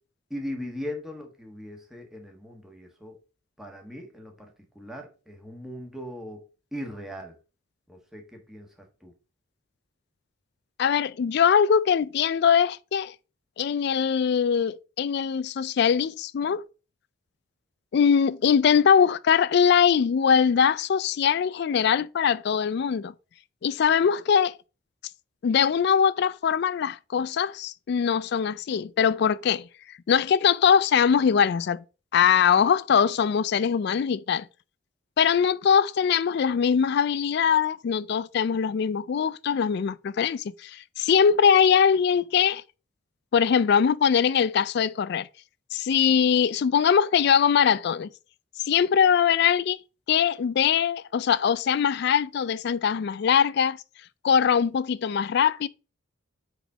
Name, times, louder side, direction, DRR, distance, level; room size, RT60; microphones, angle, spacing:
voice 1, 0.3-3.2 3.6-4.5 4.7-6.4 6.7-7.3 7.9-8.7 9.0-9.1, left 1 dB, ahead, 1.2 m, -39 dB
voice 2, 10.8-13.1 13.6-16.6 17.9-23.1 23.6-24.5 25.4-29.7 30.1-31.8 32.1-34.5 35.2-42.6 43.3-45.3 45.7-48.1 48.7-49.8 50.1-53.8 54.2-55.7, left 7 dB, 55° left, 0.3 m, -22 dB
5.0 x 5.0 x 5.4 m
head